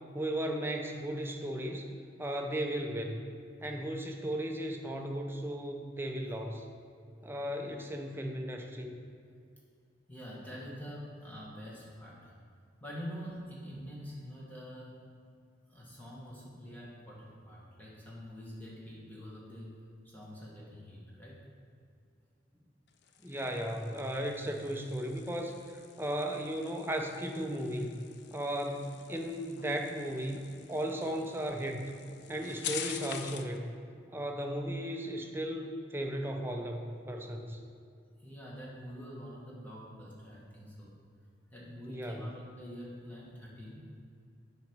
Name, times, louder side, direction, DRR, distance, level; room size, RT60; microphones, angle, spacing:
voice 1, 0.1-1.9 2.2-3.2 3.6-6.7 7.2-9.0 23.2-31.9 32.3-33.7 34.1-37.6 41.9-42.3, right 1 dB, 10° right, 2 dB, 0.6 m, -36 dB
voice 2, 10.1-12.3 12.8-15.0 15.7-19.8 20.0-21.4 38.2-40.9 41.5-43.9, equal, 10° left, -6 dB, 1.6 m, -46 dB
sound 1, 22.9-33.6, left 8 dB, 60° left, 0.4 m, -46 dB
8.8 x 5.2 x 4.6 m, 2.3 s
head